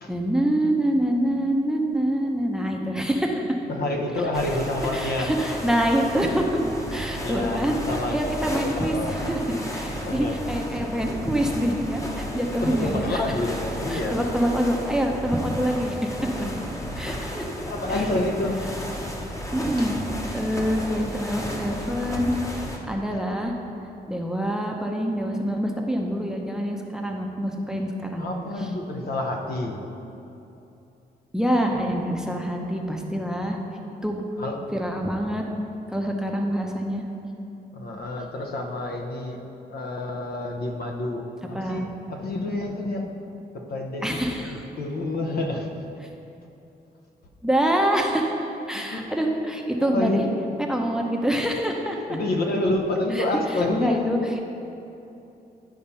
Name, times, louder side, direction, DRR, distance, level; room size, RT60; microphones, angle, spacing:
voice 1, 0.1-3.6 4.5-4.6 4.9-6.6 6.9-7.8 8.1-13.2 13.9-16.1 17.0-17.5 19.5-19.9 20.3-22.3 22.9-23.5 24.1-28.3 31.3-33.6 34.0-34.2 34.7-35.4 35.9-37.0 41.5-41.8 44.0-44.6 47.4-50.2 50.6-52.0 53.1-53.2 53.7-54.2, equal, 5° right, 1 dB, 0.7 m, -25 dB
voice 2, 3.7-5.3 7.2-9.2 10.0-10.4 10.7-11.0 12.3-14.2 16.3-16.6 17.6-18.6 19.8-19.9 23.1-23.2 28.2-29.8 34.4-34.6 34.9-35.0 37.7-39.4 39.7-43.0 43.7-44.0 44.4-45.7 48.9-49.0 49.8-50.4 51.9-54.0, left 2 dB, 70° left, 2 dB, 0.9 m, -28 dB
sound 1, 4.3-22.8, equal, 20° left, 1.0 m, -33 dB
10.5 x 4.3 x 5.5 m, 2.9 s
wide cardioid pair, 115°, 17 cm